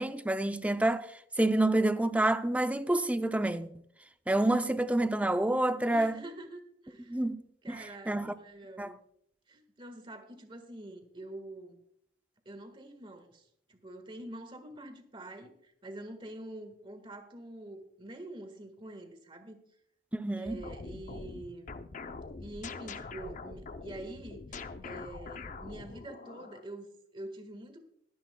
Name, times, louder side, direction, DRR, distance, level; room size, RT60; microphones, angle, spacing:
voice 1, 0.0-3.7 4.3-6.2 7.1-7.4 7.7-7.8 8.1-8.3 8.8-8.9 20.1-20.6, right 1 dB, 10° right, 0.5 m, -28 dB
voice 2, 5.9-7.2 7.6-9.0 9.5-11.8 12.4-19.6 20.4-21.7 22.4-27.8, right 1 dB, 30° right, 1.6 m, -46 dB
sound 1, 20.5-26.7, left 3 dB, 45° left, 0.6 m, -44 dB
22.0 x 10.0 x 2.2 m
head